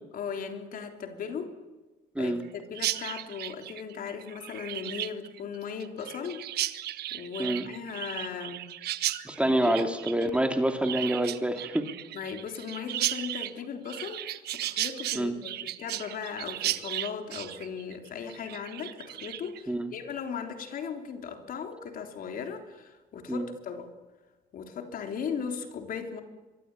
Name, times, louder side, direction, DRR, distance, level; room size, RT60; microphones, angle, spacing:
voice 1, 0.1-1.5 2.2-6.5 7.1-8.6 9.4-9.9 12.1-23.9 24.5-26.2, left 6 dB, 55° left, 5 dB, 3.6 m, -37 dB
Chirp tweet, 2.7-19.6, right 13 dB, 70° right, 1.3 m, -35 dB
voice 2, 9.2-11.9 15.1-15.3 19.7-19.9 23.3-23.5, right 1 dB, 5° right, 6 dB, 2.6 m, -27 dB
24.0 x 23.5 x 9.9 m, 1.2 s
cardioid pair, 110°, 17 cm